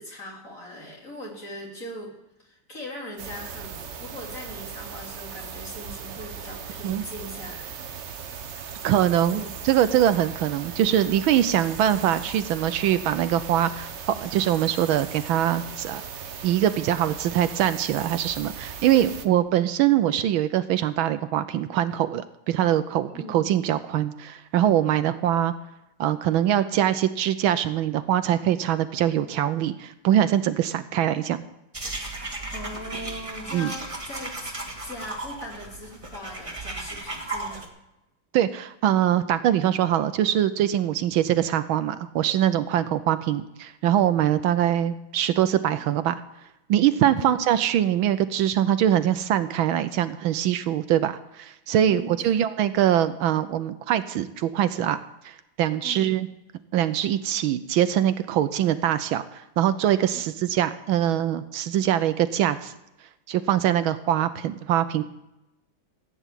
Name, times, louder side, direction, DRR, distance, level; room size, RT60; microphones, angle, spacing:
voice 1, 0.0-7.7 9.3-9.5 23.1-23.5 32.5-34.5 34.8-37.7 47.2-47.4 51.9-52.4 55.8-56.2 60.1-60.5, left 1 dB, 40° left, -2 dB, 3.5 m, -40 dB
sound 1, 3.2-19.3, right 7 dB, 55° right, 0.8 m, -38 dB
voice 2, 8.8-16.0 16.4-25.5 26.0-31.4 33.5-33.7 38.3-46.2 46.7-55.0 55.2-56.3 56.7-62.7 63.3-65.0, right 11 dB, 75° right, 12 dB, 1.4 m, -23 dB
sound 2, 31.7-37.7, right 2 dB, 15° right, 1.4 m, -35 dB
15.0 x 9.3 x 7.4 m, 0.90 s
omnidirectional pair, 2.3 m